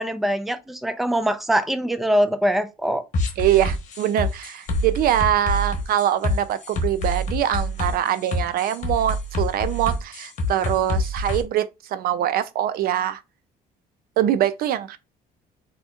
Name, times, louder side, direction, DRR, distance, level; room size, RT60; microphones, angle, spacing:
voice 1, 0.0-3.0, equal, ahead, 0.4 m, -23 dB
sound 1, 3.1-11.4, left 1 dB, 45° left, 1.0 m, -26 dB
voice 2, 3.4-13.2 14.2-15.0, right 11 dB, 60° right, 0.4 m, -23 dB
4.1 x 2.8 x 2.3 m
cardioid pair, 110°, 17 cm